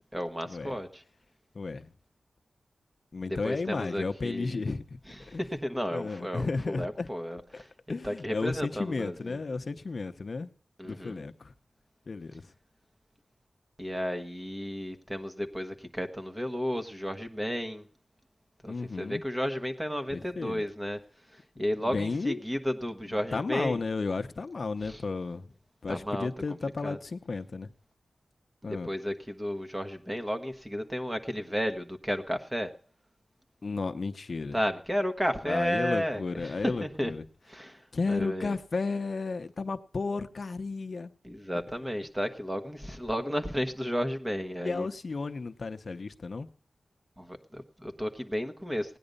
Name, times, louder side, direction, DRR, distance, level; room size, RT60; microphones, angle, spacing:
voice 1, 0.1-1.0 3.3-4.7 5.1-9.4 10.8-11.2 13.8-17.8 18.6-21.0 21.3-23.8 24.8-25.0 25.9-26.3 26.8-27.0 28.6-32.7 34.5-37.1 37.5-37.8 38.1-38.6 41.2-44.9 47.2-49.0, equal, 10° right, 7 dB, 1.3 m, -33 dB
voice 2, 1.5-1.9 3.1-4.8 5.3-5.4 5.9-7.1 7.5-7.6 7.9-10.5 10.9-11.5 12.1-12.4 18.7-19.2 20.1-20.6 21.6-22.4 23.1-25.5 25.8-27.7 28.6-28.9 33.6-34.6 35.5-37.2 37.9-41.1 44.6-46.5, left 4 dB, 50° left, 10 dB, 0.8 m, -33 dB
17.5 x 9.9 x 5.2 m, 0.43 s
wide cardioid pair, 125°, 0 cm